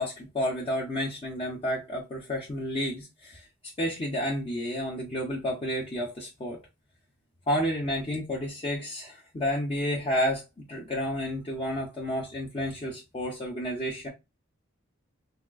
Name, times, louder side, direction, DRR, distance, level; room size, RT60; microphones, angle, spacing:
voice 1, 0.0-3.5 3.8-6.6 7.5-10.4 10.7-14.1, equal, 25° left, 0.6 m, -30 dB
3.5 x 2.3 x 2.3 m
head